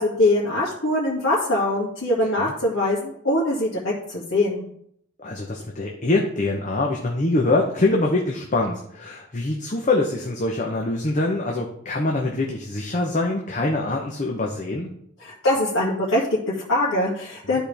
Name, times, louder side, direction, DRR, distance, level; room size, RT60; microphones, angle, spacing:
voice 1, 0.0-4.6 15.2-17.6, left 1 dB, 85° left, -8 dB, 2.2 m, -23 dB
voice 2, 2.2-2.5 5.2-14.9 17.5-17.6, left 2 dB, 35° left, 0 dB, 0.8 m, -24 dB
12.0 x 4.4 x 3.4 m, 0.69 s
head